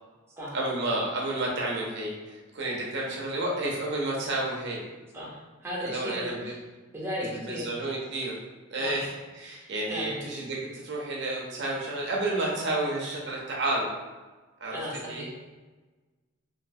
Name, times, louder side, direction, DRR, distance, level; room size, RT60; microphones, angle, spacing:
voice 1, 0.5-4.8 5.8-6.6 7.2-8.4 8.7-13.9 14.6-14.8 15.1-15.3, right 2 dB, 55° right, -3 dB, 0.7 m, -31 dB
voice 2, 5.1-6.3 6.9-7.7 8.8-9.0 9.5-10.2 14.7-15.3, equal, 10° right, -6 dB, 0.7 m, -36 dB
3.1 x 2.6 x 2.6 m, 1.3 s
head